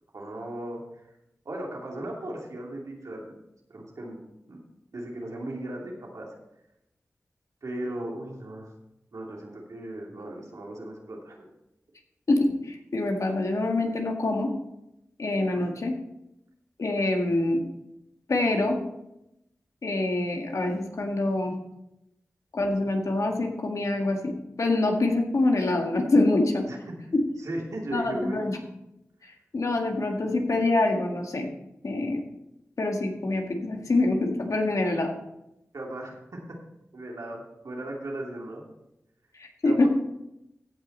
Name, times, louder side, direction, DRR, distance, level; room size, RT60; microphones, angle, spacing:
voice 1, 0.1-0.8 1.4-3.3 3.7-4.2 4.5-4.6 4.9-6.3 7.6-8.7 9.1-11.4 15.5-15.6 26.7-26.8 27.4-28.4 35.7-36.4 36.9-38.6 39.6-39.9, right 1 dB, 80° right, -1 dB, 2.6 m, -36 dB
voice 2, 12.3-14.5 15.2-15.9 16.8-17.7 18.3-18.8 19.8-21.5 22.5-26.7 27.1-27.2 27.9-28.6 29.5-31.5 31.8-32.2 32.8-35.1 39.4-39.9, left 2 dB, 75° left, 2 dB, 1.8 m, -25 dB
15.5 x 6.1 x 4.3 m, 0.87 s
cardioid pair, 45°, 6 cm